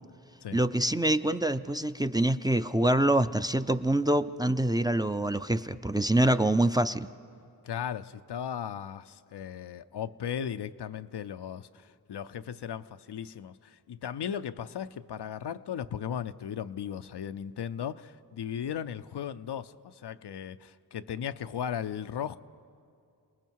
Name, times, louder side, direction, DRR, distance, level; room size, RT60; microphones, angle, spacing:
voice 1, 0.5-7.1, right 1 dB, 10° right, 10 dB, 0.5 m, -25 dB
voice 2, 7.6-22.4, left 8 dB, 80° left, 11 dB, 0.6 m, -36 dB
29.5 x 19.5 x 4.7 m, 2.4 s
cardioid pair, 50°, 40 cm